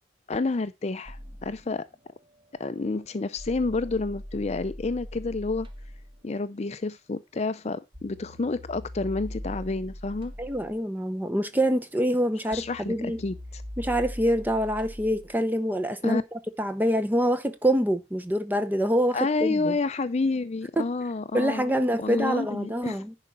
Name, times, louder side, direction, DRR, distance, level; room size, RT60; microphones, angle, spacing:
voice 1, 0.3-1.9 2.6-5.7 6.2-10.3 12.5-13.6 16.0-16.2 19.1-23.0, left 3 dB, 35° left, 0.5 m, -29 dB
sound 1, 1.1-6.2 7.9-15.4, equal, 25° right, 1.1 m, -42 dB
voice 2, 10.4-13.2 13.8-19.8 20.8-20.9 21.3-23.2, equal, 10° right, 0.8 m, -26 dB
10.5 x 4.8 x 5.4 m
head